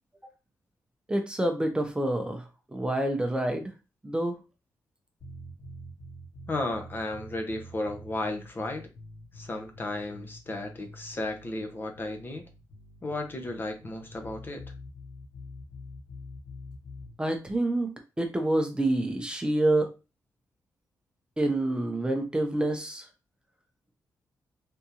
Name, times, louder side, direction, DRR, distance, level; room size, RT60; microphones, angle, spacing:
voice 1, 1.1-3.7 4.0-4.4 17.2-17.9 18.2-19.9 21.4-23.1, right 1 dB, 15° right, 4 dB, 0.6 m, -27 dB
sound 1, 5.2-17.1, left 1 dB, 55° left, 2.2 m, -46 dB
voice 2, 6.5-8.9 9.3-12.5 13.0-14.6, left 2 dB, 30° left, 4 dB, 0.8 m, -34 dB
3.5 x 2.6 x 2.8 m, 0.28 s
cardioid pair, 100°, 7 cm